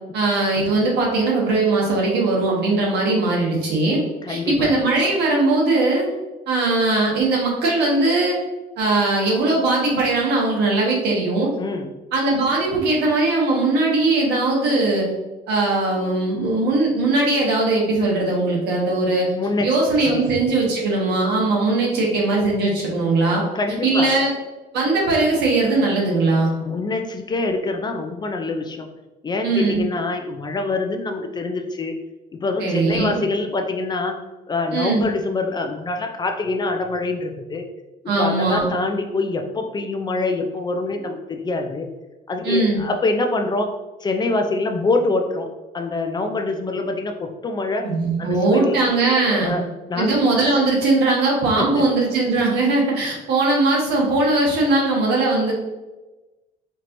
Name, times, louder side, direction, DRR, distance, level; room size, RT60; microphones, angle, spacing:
voice 1, 0.1-4.0 4.3-6.1 6.5-8.4 8.8-11.5 12.1-15.1 15.5-19.3 19.6-23.4 23.8-24.3 24.7-26.5 29.4-29.8 32.6-33.1 34.7-35.0 38.1-38.7 42.4-42.8 47.8-49.5 50.0-55.5, right 2 dB, 75° right, -2 dB, 1.3 m, -20 dB
voice 2, 4.2-4.7 11.6-11.9 19.4-19.7 20.0-20.3 23.5-24.1 26.6-28.9 29.2-32.0 32.3-34.2 34.5-37.6 38.2-41.9 42.3-43.7 44.0-45.5 45.7-47.1 47.4-47.8 48.2-48.8 49.4-49.6 49.9-50.2 51.6-51.9, left 3 dB, 25° left, 5 dB, 0.4 m, -25 dB
4.5 x 2.9 x 2.6 m, 1.1 s
cardioid pair, 110°, 17 cm